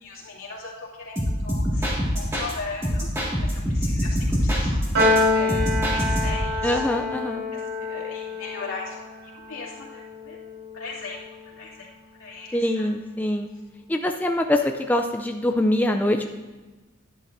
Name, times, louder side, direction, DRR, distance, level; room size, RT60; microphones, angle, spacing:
voice 1, 0.0-3.1 3.4-4.8 5.3-6.8 7.5-10.4 10.7-11.2 11.6-11.9 12.2-12.9, left 3 dB, 80° left, -5 dB, 2.5 m, -38 dB
sound 1, 1.2-2.5 2.8-5.2 5.5-6.5, equal, 10° right, 1.9 m, -25 dB
Piano, 4.9-11.5, left 2 dB, 75° right, 3.5 m, -27 dB
voice 2, 6.6-7.4 12.5-13.5 13.9-16.3, left 1 dB, 10° left, 4 dB, 0.4 m, -24 dB
11.5 x 10.5 x 2.6 m, 1.2 s
head